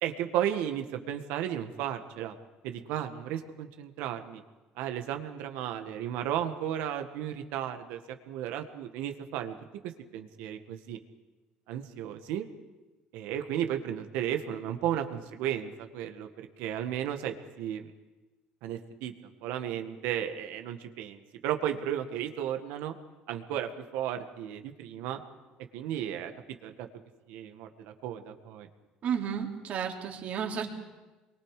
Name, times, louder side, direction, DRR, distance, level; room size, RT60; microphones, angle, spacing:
voice 1, 0.0-2.4 2.6-4.4 4.8-8.0 8.3-9.6 10.1-11.0 11.7-12.5 13.1-17.9 18.6-19.1 19.4-23.0 23.3-25.2 25.7-26.3 26.6-26.9 27.3-28.7, right 10 dB, 80° right, 6 dB, 1.7 m, -34 dB
voice 2, 29.0-30.7, right 7 dB, 55° right, 1 dB, 3.4 m, -32 dB
25.0 x 23.0 x 5.0 m, 1.2 s
supercardioid pair, 95°, 3 cm